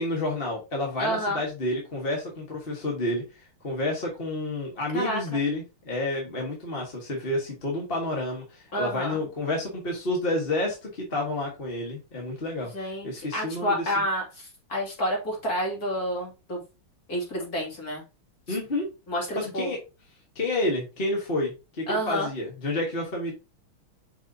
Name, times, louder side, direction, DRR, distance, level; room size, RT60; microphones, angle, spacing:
voice 1, 0.0-3.2 3.6-14.0 18.5-18.9 19.3-19.8 20.3-23.3, left 2 dB, 30° left, -1 dB, 1.6 m, -30 dB
voice 2, 1.0-1.4 4.9-5.2 8.7-9.2 12.7-16.6 17.1-18.0 18.5-18.6 19.1-19.7 21.9-22.3, equal, 45° left, -1 dB, 3.2 m, -29 dB
7.4 x 5.4 x 2.8 m, 0.29 s
omnidirectional pair, 2.3 m